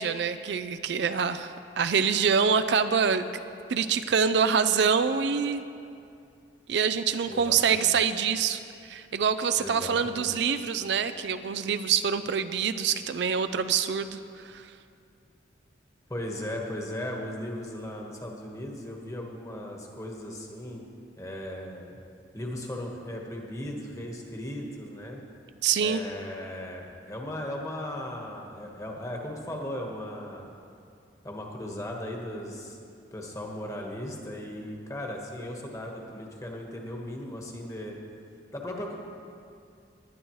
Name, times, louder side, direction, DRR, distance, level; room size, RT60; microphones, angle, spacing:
voice 1, 0.0-3.4 3.7-5.6 6.7-14.7 25.6-26.0, right 6 dB, 65° right, 11 dB, 0.4 m, -26 dB
voice 2, 7.3-7.9 9.6-10.3 16.1-20.8 21.2-22.0 22.3-25.2 25.8-30.5 31.2-32.8 33.1-38.0 38.5-39.0, left 1 dB, 15° left, 0 dB, 1.3 m, -37 dB
19.0 x 11.0 x 3.2 m, 2.5 s
head